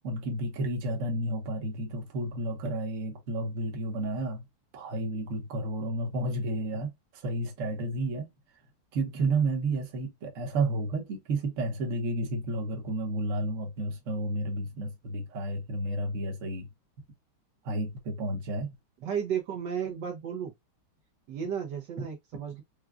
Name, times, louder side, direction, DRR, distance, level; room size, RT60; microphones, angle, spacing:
voice 1, 0.0-4.4 4.7-8.3 8.9-16.7 17.6-18.7, right 2 dB, 50° right, 1.1 m, -31 dB
voice 2, 19.0-20.5 21.3-22.6, right 8 dB, 70° right, 1.2 m, -33 dB
4.7 x 2.2 x 2.3 m
omnidirectional pair, 2.2 m